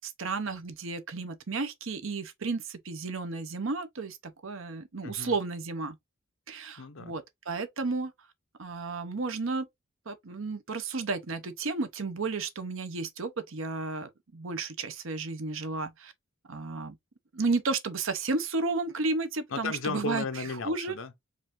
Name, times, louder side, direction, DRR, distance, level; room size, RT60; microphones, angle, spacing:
voice 1, 0.0-6.0 6.5-8.1 8.6-9.7 10.1-16.1 16.5-17.0 17.3-20.2 20.6-20.9, right 3 dB, 65° right, 0.8 m, -33 dB
voice 2, 5.0-5.4 6.8-7.2 19.5-21.2, left 3 dB, 65° left, 0.6 m, -35 dB
4.8 x 2.6 x 3.7 m
head